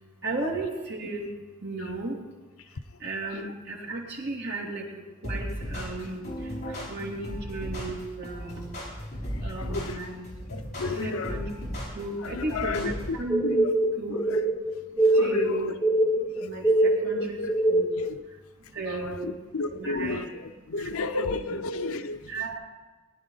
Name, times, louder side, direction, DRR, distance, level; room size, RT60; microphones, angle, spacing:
voice 1, 0.2-1.3 1.6-2.1 3.0-4.8 5.2-6.2 6.9-8.8 9.4-10.2 11.0-11.4 11.9-13.7 14.0-14.2 15.2-15.8 16.4-17.4 17.7-17.9 18.8-19.3 19.7-20.2 20.8-21.6 22.3-22.6, right 2 dB, 50° right, -3 dB, 2.8 m, -34 dB
sound 1, 5.2-13.2, equal, 35° left, 5.7 m, -36 dB
voice 2, 9.6-10.0 10.5-11.4 12.2-13.2 13.4-13.9 14.1-14.4 15.1-15.7 17.1-17.5 18.0-18.1 18.9-22.3, left 3 dB, 80° left, 9 dB, 0.6 m, -33 dB
sound 2, 13.3-18.1, right 1 dB, 5° left, 0.7 m, -24 dB
19.5 x 11.0 x 4.0 m, 1.2 s
head